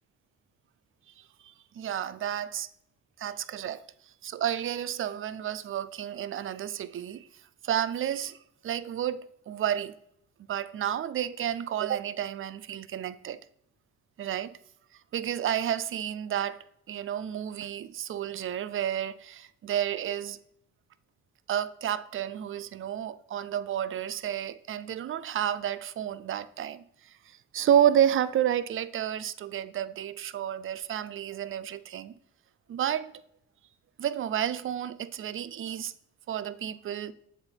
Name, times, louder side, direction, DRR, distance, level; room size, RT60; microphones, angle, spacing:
voice 1, 1.7-2.7 3.2-3.8 4.2-7.3 7.6-8.4 8.6-10.0 10.5-13.4 14.2-14.6 15.1-20.4 21.5-32.1 32.7-33.2 34.0-35.9 36.3-37.1, right 10 dB, 45° right, 0.4 m, -30 dB
7.4 x 3.6 x 4.4 m
cardioid pair, 90°, 30 cm